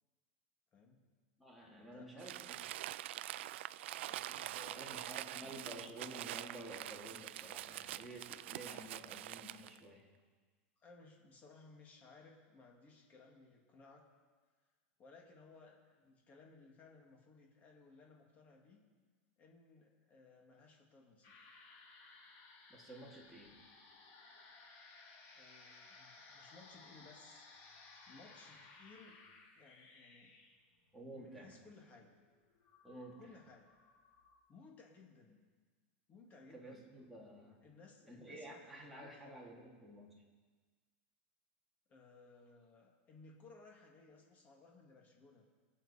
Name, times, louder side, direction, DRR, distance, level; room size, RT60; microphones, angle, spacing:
voice 1, 0.7-1.1 1.7-2.3 4.1-5.8 8.7-8.9 10.8-14.1 15.0-18.8 19.4-21.4 25.3-27.4 28.1-29.2 29.6-30.4 31.1-32.1 33.2-33.8 34.5-35.4 36.1-36.9 37.6-39.3 41.9-45.4, left 4 dB, 25° left, 0 dB, 2.3 m, -60 dB
voice 2, 1.4-2.6 4.8-10.1 22.7-23.5 30.9-31.5 32.8-33.3 36.5-37.6 38.1-40.1, right 1 dB, ahead, -3 dB, 2.5 m, -52 dB
Crumpling crinkling, 2.2-9.8, right 14 dB, 80° right, 0.4 m, -45 dB
sound 1, 21.2-34.4, left 3 dB, 45° left, 2.9 m, -60 dB
22.5 x 7.7 x 4.4 m, 1.4 s
supercardioid pair, 150°, 6 cm